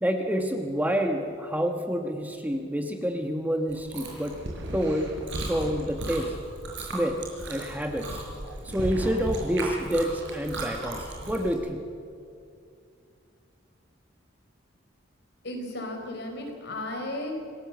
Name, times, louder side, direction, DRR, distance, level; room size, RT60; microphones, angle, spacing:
voice 1, 0.0-4.4 4.7-5.1 5.4-6.3 6.8-7.2 7.5-8.2 8.6-11.9, equal, 10° right, 4 dB, 1.2 m, -28 dB
Chewing mastication, 3.7-11.5, right 1 dB, 65° right, 5.4 m, -36 dB
voice 2, 15.4-17.3, left 1 dB, 60° left, 3 dB, 4.3 m, -34 dB
26.5 x 17.0 x 7.2 m, 2.4 s
head